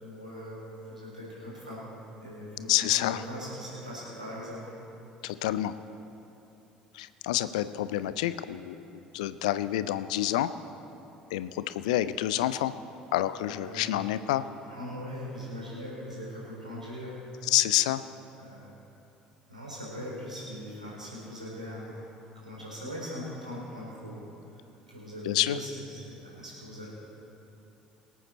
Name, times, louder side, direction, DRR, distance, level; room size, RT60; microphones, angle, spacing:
voice 1, 0.0-1.9 2.2-4.6 13.5-13.9 14.6-17.2 18.3-18.8 19.5-22.0 22.4-24.2 24.5-24.6 24.9-26.9, equal, 90° right, -6 dB, 3.8 m, -40 dB
voice 2, 2.7-3.2 5.2-5.7 6.9-10.5 11.3-12.7 13.1-14.4 17.4-18.0 25.3-25.6, left 14 dB, 70° left, 14 dB, 0.5 m, -28 dB
24.0 x 8.5 x 4.2 m, 3.0 s
figure-of-eight pair, 55°, 4 cm